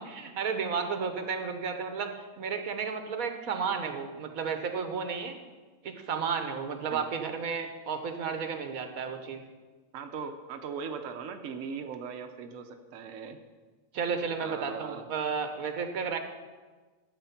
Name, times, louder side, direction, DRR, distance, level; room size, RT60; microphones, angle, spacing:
voice 1, 0.0-5.4 5.8-9.4 13.9-16.2, right 6 dB, 90° right, 6 dB, 1.5 m, -33 dB
voice 2, 9.9-13.4 14.4-15.0, right 6 dB, 70° right, 5 dB, 1.1 m, -39 dB
12.5 x 7.8 x 5.8 m, 1.4 s
omnidirectional pair, 1.4 m